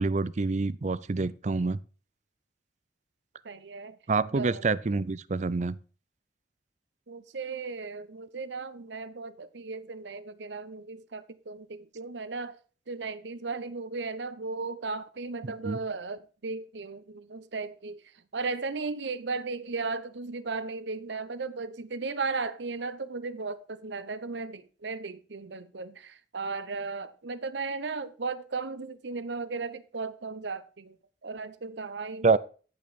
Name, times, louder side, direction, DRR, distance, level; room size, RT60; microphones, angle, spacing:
voice 1, 0.0-1.8 4.1-5.8 15.4-15.8 32.2-32.4, right 3 dB, 40° right, 0.5 m, -27 dB
voice 2, 3.4-4.0 4.3-4.6 7.1-12.6 12.9-18.0 18.3-31.0 31.2-32.4, right 4 dB, 75° right, 0.8 m, -36 dB
15.5 x 5.3 x 4.2 m
head